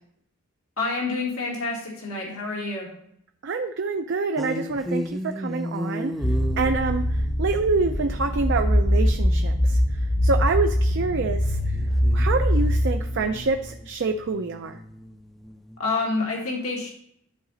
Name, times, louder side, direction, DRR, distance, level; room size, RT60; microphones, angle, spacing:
voice 1, 0.8-2.9 15.8-16.9, left 3 dB, 85° left, -1 dB, 1.7 m, -28 dB
voice 2, 3.4-6.1 6.6-7.1 7.4-9.8 10.2-11.6 12.1-14.8, right 3 dB, 55° right, 6 dB, 0.4 m, -26 dB
sound 1, 4.4-10.1 11.6-15.8, equal, ahead, 0.4 m, -36 dB
sound 2, 6.2-13.7, equal, 50° left, 1.1 m, -23 dB
11.5 x 4.0 x 3.9 m, 0.73 s
head